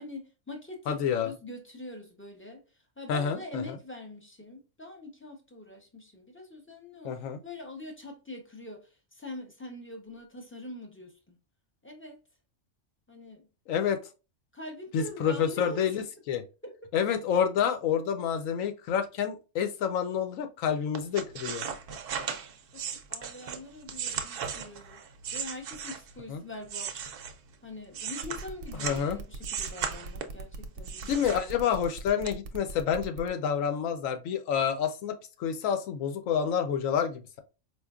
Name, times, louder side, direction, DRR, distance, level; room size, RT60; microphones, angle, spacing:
voice 1, 0.0-2.6 3.0-7.2 7.4-11.4 11.8-12.2 13.1-13.5 14.5-16.0 16.6-16.9 22.0-22.3 22.7-25.0 25.3-27.1 27.6-31.3, left 2 dB, 20° left, 0.4 m, -44 dB
voice 2, 0.9-1.3 3.1-3.8 7.0-7.4 13.7-14.0 14.9-16.4 16.9-21.7 26.3-26.4 28.8-29.2 31.1-37.4, left 8 dB, 85° left, 1.0 m, -28 dB
sound 1, 20.9-26.2 26.6-29.1 29.4-30.4 30.8-31.9 32.3-32.4, right 7 dB, 60° right, 0.6 m, -36 dB
sound 2, 28.2-33.3, right 4 dB, 80° right, 0.9 m, -41 dB
4.4 x 2.5 x 2.3 m
omnidirectional pair, 1.3 m